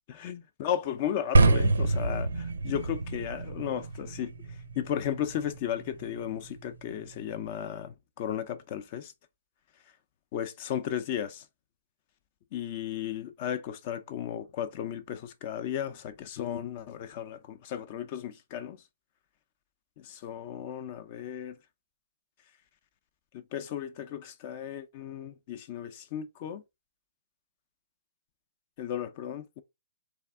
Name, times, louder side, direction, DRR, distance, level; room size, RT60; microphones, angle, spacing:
voice 1, 0.2-4.3 4.8-9.1 10.3-11.4 12.5-18.8 20.0-21.6 23.3-26.6 28.8-29.6, left 10 dB, 40° left, 0.5 m, -35 dB
sound 1, 1.3-7.5, right 2 dB, 90° right, 0.6 m, -28 dB
3.4 x 3.4 x 3.5 m
hypercardioid pair, 150°, 0 cm